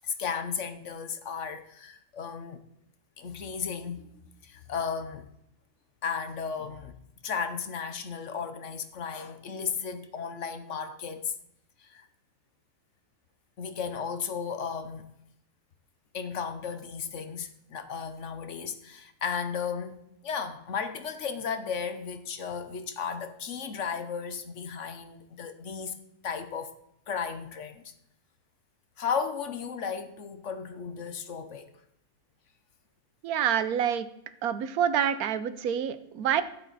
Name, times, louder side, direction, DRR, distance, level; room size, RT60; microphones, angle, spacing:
voice 1, 0.0-2.6 3.2-4.1 4.4-5.3 6.0-7.0 7.2-11.3 11.8-12.1 13.6-15.1 16.1-26.7 27.1-27.9 29.0-31.7, left 6 dB, 60° left, 1.2 m, -34 dB
voice 2, 33.2-34.1 34.4-36.4, right 9 dB, 85° right, 1.2 m, -27 dB
13.0 x 7.6 x 4.0 m
omnidirectional pair, 1.5 m